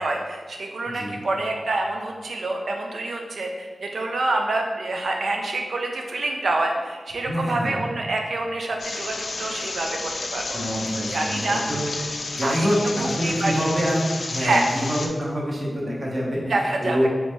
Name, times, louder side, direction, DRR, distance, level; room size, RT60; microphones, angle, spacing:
voice 1, 0.0-10.5 11.1-11.6 12.4-12.7 13.2-13.6 14.4-14.7 16.5-17.1, right 2 dB, 80° right, 2 dB, 0.4 m, -26 dB
voice 2, 0.9-1.2 7.3-7.8 10.5-11.8 12.3-16.5 16.8-17.1, equal, 40° right, -5 dB, 1.0 m, -25 dB
sound 1, 8.8-15.1, left 3 dB, 85° left, 0.4 m, -32 dB
3.9 x 3.3 x 3.1 m, 1.4 s
wide cardioid pair, 115°, 0 cm